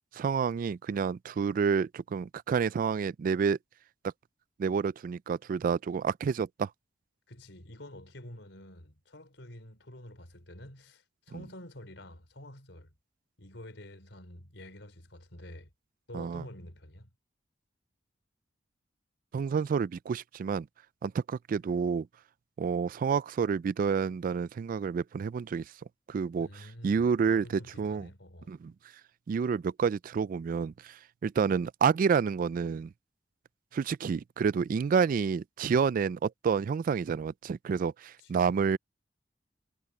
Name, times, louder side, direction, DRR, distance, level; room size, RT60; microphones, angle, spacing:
voice 1, 0.1-3.6 4.6-6.7 16.1-16.4 19.3-20.7 21.0-22.1 22.6-25.7 26.1-28.1 28.5-28.7 29.3-32.9 33.7-38.8, right 6 dB, 50° right, 0.3 m, -29 dB
voice 2, 7.3-12.9 13.4-15.7 16.1-17.1 26.4-28.5 38.2-38.5, left 1 dB, 80° left, 4.5 m, -48 dB
head